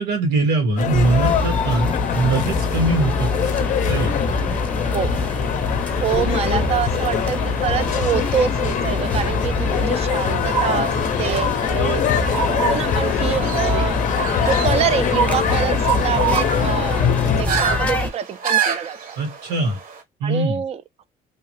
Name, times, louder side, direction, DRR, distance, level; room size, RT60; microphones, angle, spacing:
voice 1, 0.0-3.3 3.9-4.1 4.4-4.6 19.2-19.8 20.2-20.6, right 3 dB, 80° right, 1.6 m, -21 dB
sound 1, 0.8-17.4, left 7 dB, 50° left, 0.5 m, -23 dB
sound 2, 0.9-18.1, left 3 dB, 10° left, 0.7 m, -25 dB
voice 2, 5.9-12.1 12.6-14.0 14.4-19.2 20.2-21.0, right 8 dB, 40° right, 0.4 m, -26 dB
sound 3, 10.4-20.0, right 6 dB, 55° right, 1.0 m, -27 dB
2.7 x 2.4 x 3.0 m
cardioid pair, 110°, 17 cm